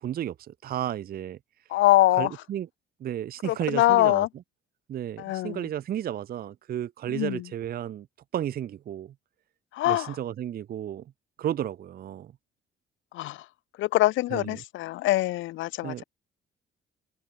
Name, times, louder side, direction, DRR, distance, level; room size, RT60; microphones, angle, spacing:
voice 1, 0.0-1.4 2.2-2.7 3.0-4.3 4.9-8.1 8.3-9.1 9.9-11.0 11.4-12.3 14.3-14.6 15.8-16.0, right 11 dB, 50° right, 0.5 m, -33 dB
voice 2, 1.7-2.3 3.4-4.3 5.2-5.7 7.1-7.4 9.7-10.2 13.1-13.4 13.8-16.0, left 16 dB, 75° left, 0.4 m, -24 dB
cardioid pair, 90°, 20 cm